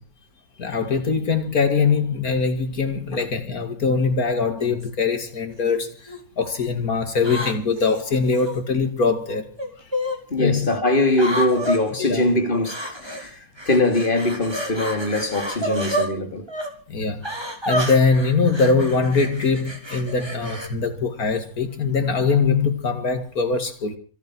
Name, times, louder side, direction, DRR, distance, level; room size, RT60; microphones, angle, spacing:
voice 1, 0.6-9.5 10.4-10.7 12.0-12.3 16.9-17.2 17.7-23.9, left 4 dB, 90° left, 2.8 m, -22 dB
sound 1, 4.6-4.9 5.6-6.2 7.2-8.6 9.6-10.2 11.1-11.8 12.6-13.3 13.6-16.1 16.5-16.7 17.2-20.7, equal, 15° right, 3.7 m, -29 dB
voice 2, 10.3-16.5, left 1 dB, 35° left, 2.9 m, -22 dB
25.5 x 8.9 x 6.3 m
omnidirectional pair, 1.5 m